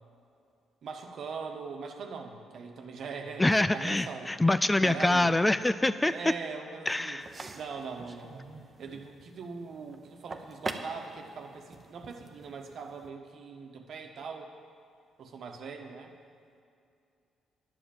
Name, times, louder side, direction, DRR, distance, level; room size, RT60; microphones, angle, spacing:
voice 1, 0.8-4.4 4.8-5.4 5.8-7.2 7.5-8.5 8.8-14.5 15.2-16.1, right 5 dB, 65° right, 4 dB, 1.3 m, -41 dB
voice 2, 3.4-6.1 6.9-7.3, left 2 dB, 15° left, 13 dB, 0.3 m, -25 dB
sound 1, 7.2-13.1, right 3 dB, 30° right, 0.9 m, -44 dB
11.0 x 7.8 x 7.2 m, 2.5 s
cardioid pair, 90°, 0 cm